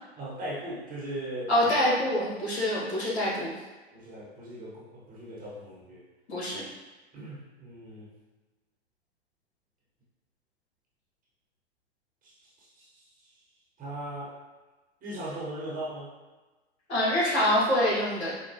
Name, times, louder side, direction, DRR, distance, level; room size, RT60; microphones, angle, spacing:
voice 1, 0.2-1.5 3.9-6.0 6.5-6.6 7.1-8.1 12.2-12.3 12.6-13.3 13.8-14.3 15.0-16.1, right 1 dB, 25° right, -6 dB, 1.0 m, -39 dB
voice 2, 1.5-3.5 6.3-6.6 16.9-18.3, left 1 dB, 80° left, -6 dB, 1.4 m, -25 dB
4.4 x 2.2 x 2.7 m, 1.2 s
hypercardioid pair, 100°, 33 cm